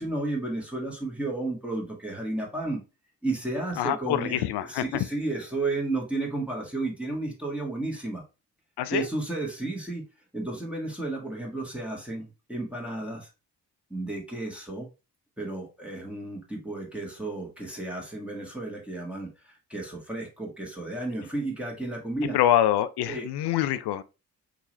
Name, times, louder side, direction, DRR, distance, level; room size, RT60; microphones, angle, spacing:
voice 1, 0.0-2.8 3.2-8.2 8.9-10.0 10.3-13.3 13.9-14.9 15.4-22.4 23.1-23.3, right 2 dB, 5° right, 1.6 m, -32 dB
voice 2, 3.8-5.0 8.8-9.1 22.3-24.0, left 12 dB, 70° left, 0.5 m, -25 dB
3.7 x 2.9 x 3.1 m
hypercardioid pair, 45°, 42 cm